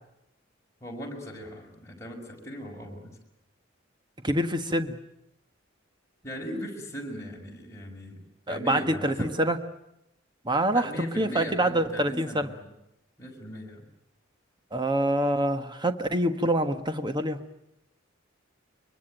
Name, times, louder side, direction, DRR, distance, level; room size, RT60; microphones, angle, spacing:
voice 1, 0.8-3.1 6.2-8.2 8.5-9.3 10.7-12.7 13.2-13.8, equal, 15° left, -1 dB, 5.9 m, -38 dB
voice 2, 4.2-5.0 8.5-9.6 10.4-10.9 11.2-12.5 14.7-17.4, right 1 dB, 25° right, 8 dB, 1.4 m, -26 dB
23.5 x 23.0 x 9.1 m, 0.83 s
head